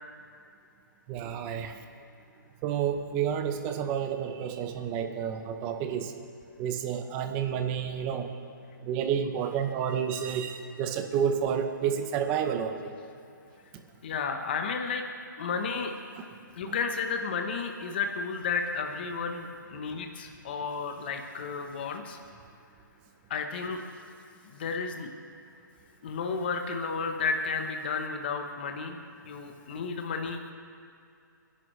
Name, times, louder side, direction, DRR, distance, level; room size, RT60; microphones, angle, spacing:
voice 1, 1.1-1.7 2.6-6.1 6.6-8.3 8.8-12.9 16.7-16.8, right 8 dB, 10° right, 6 dB, 0.5 m, -30 dB
voice 2, 14.0-15.0 15.4-15.9 16.5-22.2 23.3-23.8 24.4-25.1 26.0-30.5, left 5 dB, 30° left, 4 dB, 0.9 m, -32 dB
27.5 x 11.0 x 3.2 m, 2.5 s
hypercardioid pair, 175°, 11 cm